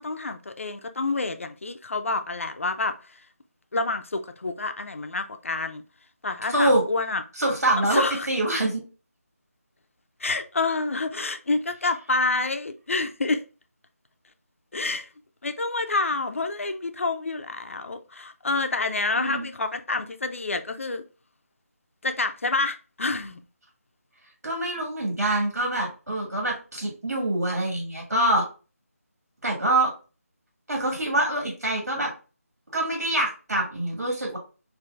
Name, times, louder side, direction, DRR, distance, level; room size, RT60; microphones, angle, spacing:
voice 1, 0.0-3.2 3.7-5.8 6.2-7.2 7.9-8.3 10.2-13.4 14.7-15.1 15.4-21.0 22.0-23.4, left 3 dB, 55° left, 0.5 m, -28 dB
voice 2, 6.5-6.8 7.4-8.8 19.1-19.5 24.4-28.4 29.4-29.9 30.7-32.1 32.7-34.4, right 1 dB, 85° right, 2.0 m, -25 dB
4.5 x 2.6 x 2.5 m
figure-of-eight pair, 175°, 8 cm